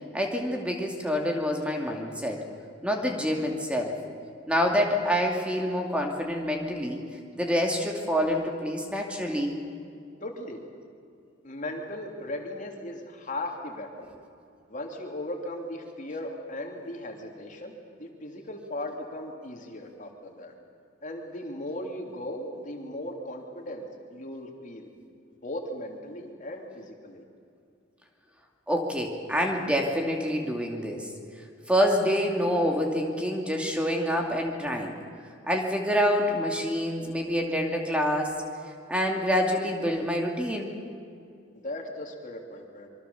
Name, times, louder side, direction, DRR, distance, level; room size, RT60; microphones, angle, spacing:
voice 1, 0.1-2.4 2.8-4.0 4.5-7.0 7.4-9.6 28.7-31.1 31.7-35.0 35.5-38.3 38.9-40.7, equal, 5° right, 1 dB, 2.4 m, -27 dB
voice 2, 10.2-10.6 11.4-14.1 14.7-20.5 21.0-24.9 25.4-27.2 41.5-42.9, left 1 dB, 40° left, 2 dB, 3.1 m, -37 dB
26.5 x 24.0 x 7.0 m, 2.4 s
head